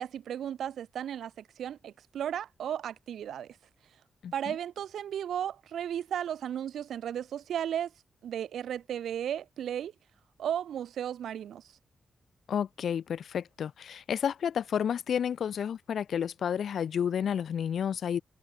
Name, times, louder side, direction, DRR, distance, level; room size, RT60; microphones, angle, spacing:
voice 1, 0.0-3.6 3.8-4.0 4.3-7.9 8.2-9.9 10.4-11.8, right 9 dB, 85° right, 0.6 m, -35 dB
voice 2, 4.2-4.5 12.5-18.2, left 8 dB, 70° left, 0.7 m, -31 dB
cardioid pair, 100°, 0 cm